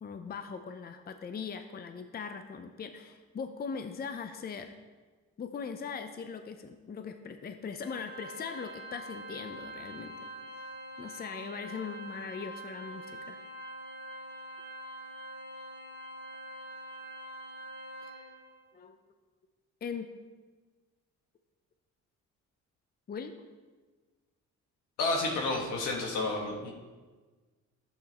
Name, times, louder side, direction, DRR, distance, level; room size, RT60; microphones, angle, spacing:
voice 1, 0.0-4.7 5.4-10.2 11.0-13.4 18.7-19.0 19.8-20.1 23.1-23.3, left 5 dB, 30° left, 8 dB, 0.6 m, -40 dB
Organ, 7.8-18.6, right 1 dB, 50° left, 3.1 m, -45 dB
voice 2, 25.0-26.7, left 2 dB, 85° left, 0 dB, 1.7 m, -30 dB
11.0 x 8.1 x 3.0 m, 1.4 s
cardioid pair, 90°, 30 cm